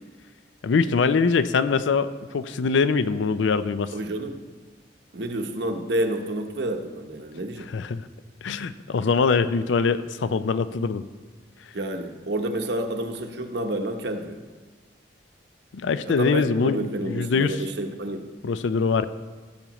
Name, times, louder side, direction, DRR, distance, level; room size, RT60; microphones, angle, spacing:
voice 1, 0.6-3.9 7.7-8.0 8.4-11.0 15.7-17.6 18.4-19.1, left 5 dB, 80° left, 13 dB, 0.4 m, -23 dB
voice 2, 3.9-4.4 5.1-7.7 11.7-14.4 16.0-18.3, right 1 dB, 65° right, 5 dB, 0.9 m, -29 dB
15.5 x 7.0 x 3.0 m, 1.4 s
head